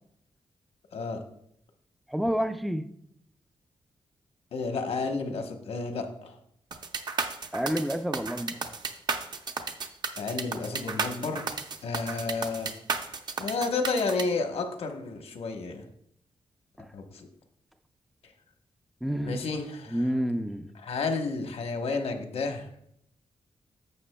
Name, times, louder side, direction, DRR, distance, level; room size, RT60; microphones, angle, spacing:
voice 1, 0.9-1.2 4.5-6.4 10.2-12.7 13.4-15.9 16.9-17.3 19.2-20.0 20.8-22.7, left 4 dB, 75° left, 5 dB, 1.0 m, -31 dB
voice 2, 2.1-2.9 7.5-8.6 16.8-16.9 19.0-19.4 19.9-20.7, equal, ahead, 9 dB, 0.3 m, -29 dB
sound 1, 6.7-14.2, right 4 dB, 45° right, 0.6 m, -33 dB
11.0 x 7.3 x 2.2 m, 0.72 s
wide cardioid pair, 165°, 10 cm